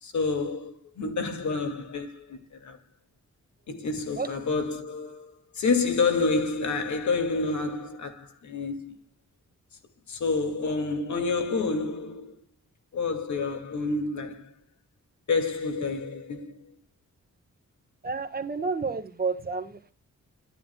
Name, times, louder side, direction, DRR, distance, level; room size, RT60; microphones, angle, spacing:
voice 1, 0.0-2.8 3.7-9.0 10.1-12.4 12.9-14.5 15.3-16.8, left 4 dB, 70° left, 2.4 m, -29 dB
voice 2, 18.0-19.9, right 4 dB, 30° right, 1.4 m, -30 dB
12.0 x 10.0 x 2.3 m
wide cardioid pair, 120°, 30 cm